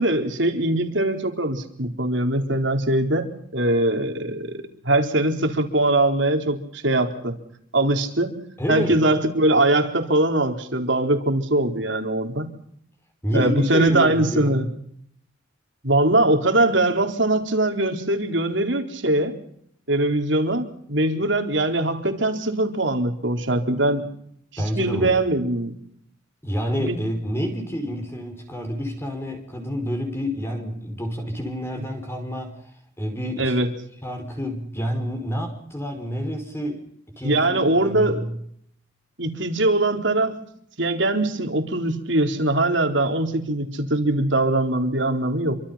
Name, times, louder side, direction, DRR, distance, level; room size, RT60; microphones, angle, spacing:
voice 1, 0.0-7.4 7.7-8.4 8.7-12.5 13.3-14.7 15.8-19.4 19.9-24.1 24.5-25.8 26.8-27.0 31.8-31.9 33.4-33.7 37.2-38.2 39.2-40.4 40.8-45.5, right 2 dB, 65° right, 5 dB, 4.3 m, -22 dB
voice 2, 8.6-9.0 13.2-14.6 24.6-25.2 26.4-32.6 33.0-33.5 34.0-36.8 37.2-38.4, equal, 10° left, 4 dB, 5.4 m, -28 dB
28.5 x 25.0 x 5.9 m, 0.67 s
head